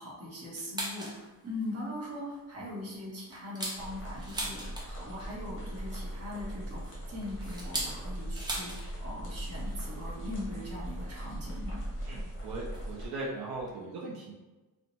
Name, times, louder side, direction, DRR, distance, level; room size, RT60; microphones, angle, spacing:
voice 1, 0.0-11.8, left 1 dB, 40° right, -4 dB, 0.9 m, -41 dB
sound 1, 0.5-1.2 1.6-1.7 2.1-2.4 2.8-5.1 6.3-8.9 9.2-9.3 9.6-9.9 10.8-10.9 11.8-11.9 12.7-12.9 13.2-13.3 13.5-13.7, right 1 dB, 10° right, 0.4 m, -39 dB
sound 2, 3.8-13.1, right 1 dB, 35° left, 0.8 m, -39 dB
voice 2, 12.0-14.3, right 2 dB, 90° right, -4 dB, 0.5 m, -39 dB
2.6 x 2.1 x 2.8 m, 1.2 s
wide cardioid pair, 145°, 37 cm